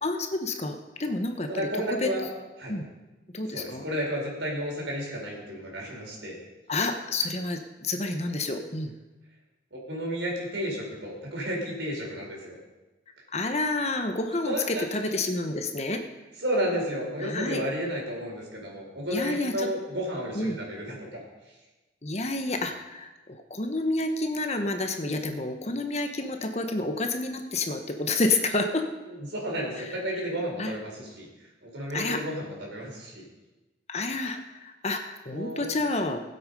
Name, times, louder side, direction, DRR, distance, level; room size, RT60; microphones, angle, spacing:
voice 1, 0.0-1.7 2.0-2.1 2.7-2.9 3.3-3.8 6.7-8.9 13.3-16.0 17.2-17.6 19.1-19.7 20.3-20.6 22.0-23.1 23.5-28.8 29.8-29.9 30.6-30.7 31.9-32.2 33.9-36.2, left 2 dB, 35° left, 6 dB, 1.1 m, -29 dB
voice 2, 1.5-2.3 2.6-2.8 3.5-6.4 9.7-12.5 14.4-14.9 16.4-21.2 22.5-22.6 29.1-31.3 31.6-33.2 35.3-35.6, equal, 80° right, -2 dB, 4.5 m, -32 dB
19.0 x 8.0 x 5.4 m, 1.1 s
head